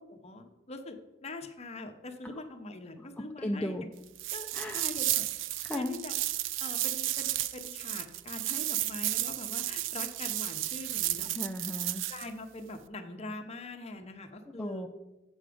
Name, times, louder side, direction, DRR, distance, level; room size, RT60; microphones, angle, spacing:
voice 1, 0.1-3.8 4.3-5.3 5.7-6.2 6.6-11.3 12.1-14.9, left 2 dB, 35° left, 6 dB, 0.8 m, -43 dB
voice 2, 3.4-3.8 4.5-4.9 5.6-6.0 11.3-12.0 14.6-14.9, left 1 dB, 5° left, 2 dB, 0.3 m, -35 dB
sound 1, 4.1-12.3, right 15 dB, 70° right, 0.3 m, -33 dB
7.8 x 6.3 x 4.9 m, 1.0 s
head